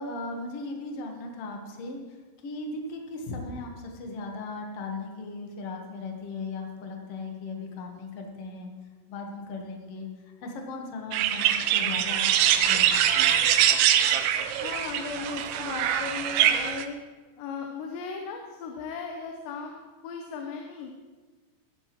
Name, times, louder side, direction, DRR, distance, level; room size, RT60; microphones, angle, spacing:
voice 1, 0.0-8.7 9.1-10.1 10.4-13.1, left 3 dB, 75° left, 2 dB, 1.4 m, -37 dB
sound 1, 11.1-16.9, right 10 dB, 85° right, 2.3 m, -23 dB
voice 2, 14.6-17.0 17.4-20.9, left 5 dB, 90° left, 2 dB, 3.1 m, -37 dB
15.0 x 11.0 x 3.1 m, 1.3 s
omnidirectional pair, 4.9 m